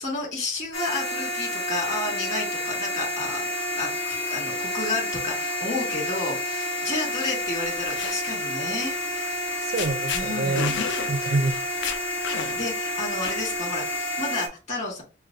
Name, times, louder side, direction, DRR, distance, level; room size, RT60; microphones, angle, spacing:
voice 1, 0.0-3.5 3.7-9.4 10.1-10.9 12.5-15.0, left 2 dB, 40° left, 1.9 m, -31 dB
sound 1, 0.7-14.5, left 1 dB, 85° left, 1.1 m, -29 dB
sound 2, 7.6-8.2 9.4-9.5 9.8-10.2 10.6-11.1 11.5-11.6 11.8-12.7 13.2-13.7, left 7 dB, 65° left, 0.5 m, -31 dB
voice 2, 9.6-11.6, right 3 dB, 55° right, 0.4 m, -27 dB
6.1 x 2.1 x 2.6 m
head